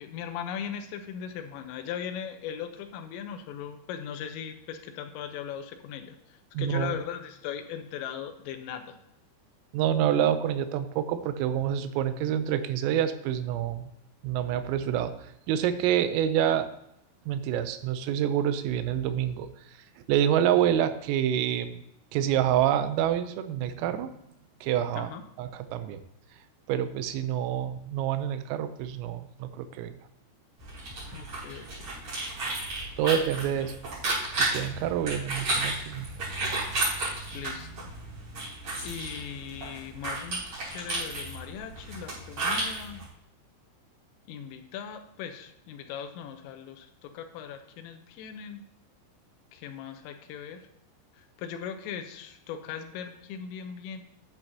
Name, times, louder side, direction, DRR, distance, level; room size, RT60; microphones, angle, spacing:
voice 1, 0.0-9.0 25.0-25.2 31.1-31.9 33.0-33.2 33.6-33.7 37.3-37.9 38.8-43.1 44.3-48.7 49.5-50.6 51.1-54.0, left 8 dB, 85° left, 7 dB, 3.4 m, -39 dB
voice 2, 6.5-7.0 9.7-13.9 14.2-15.1 15.5-16.7 17.3-19.5 20.1-21.8 22.1-24.1 24.6-25.1 25.4-26.0 26.7-29.9 33.0-33.8 34.4-36.1, right 10 dB, 85° right, 10 dB, 3.3 m, -27 dB
sound 1, 30.6-43.0, right 2 dB, 35° right, 4.7 m, -33 dB
11.0 x 9.4 x 2.8 m, 0.81 s
omnidirectional pair, 5.9 m